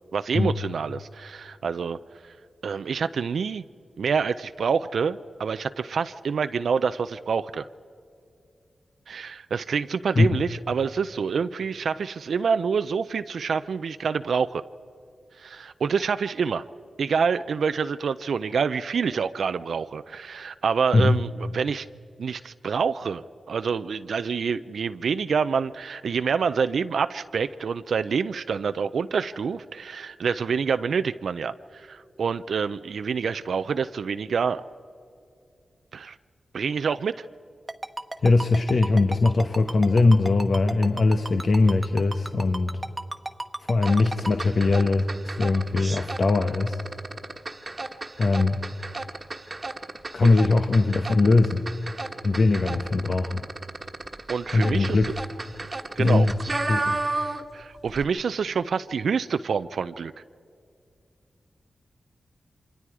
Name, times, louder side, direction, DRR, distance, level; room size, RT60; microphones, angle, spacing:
voice 1, 0.1-2.0 2.2-2.3 2.6-3.6 4.0-7.7 9.1-14.6 15.4-16.6 17.0-21.9 22.2-34.6 35.9-36.2 36.5-37.2 54.3-55.0 56.0-56.3 57.5-60.1, right 6 dB, 80° right, 11 dB, 0.4 m, -27 dB
Ringtone, 37.7-44.4, right 2 dB, 20° right, 1.1 m, -33 dB
voice 2, 38.2-42.8 43.7-46.8 48.2-48.6 50.1-51.6 52.2-53.5 54.5-55.1 56.0-56.3 56.7-56.9, left 3 dB, 65° left, 6 dB, 1.0 m, -21 dB
sound 1, 43.8-57.6 57.9-58.0, right 2 dB, 35° right, 1.3 m, -33 dB
28.5 x 25.0 x 4.8 m, 2.4 s
cardioid pair, 55°, 0 cm